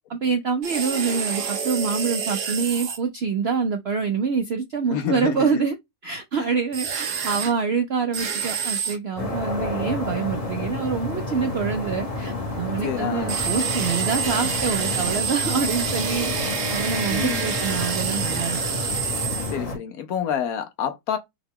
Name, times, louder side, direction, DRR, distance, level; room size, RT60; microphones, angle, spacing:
voice 1, 0.1-5.8 6.0-18.6, right 5 dB, 65° right, 0.6 m, -26 dB
sound 1, 0.6-3.0 6.7-7.5 8.1-9.0 13.3-19.6, right 6 dB, 85° right, 1.5 m, -28 dB
voice 2, 4.9-5.6 6.4-6.6 12.8-13.4 17.1-17.5 19.4-21.2, left 8 dB, 70° left, 1.1 m, -28 dB
sound 2, 9.2-19.8, left 2 dB, 30° left, 0.9 m, -30 dB
5.8 x 2.3 x 3.6 m
omnidirectional pair, 1.7 m